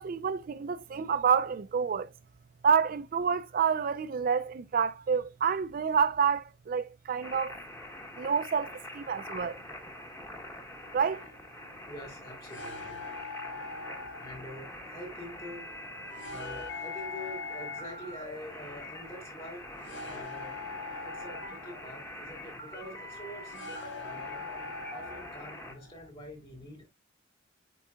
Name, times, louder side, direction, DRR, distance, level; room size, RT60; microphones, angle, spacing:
voice 1, 0.0-2.1 2.6-7.6 8.2-9.6 10.9-11.3, right 6 dB, 45° right, 0.3 m, -28 dB
sound 1, 7.2-25.7, left 1 dB, 15° left, 1.1 m, -44 dB
sound 2, 10.8-26.1, left 3 dB, 70° left, 1.2 m, -44 dB
voice 2, 11.9-13.0 14.2-15.7 16.2-19.7 20.0-20.5 20.9-23.5 24.0-24.4 24.9-26.9, left 1 dB, 30° left, 4.1 m, -45 dB
8.8 x 4.6 x 2.4 m
head